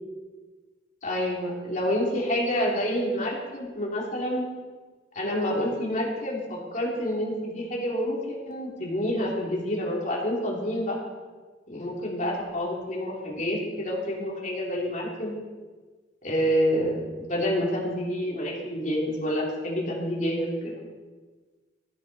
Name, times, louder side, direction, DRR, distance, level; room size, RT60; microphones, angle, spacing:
voice 1, 1.0-4.4 5.1-11.0 11.7-15.4 16.2-20.7, equal, 45° left, -3 dB, 3.1 m, -28 dB
14.5 x 9.2 x 4.2 m, 1.4 s
head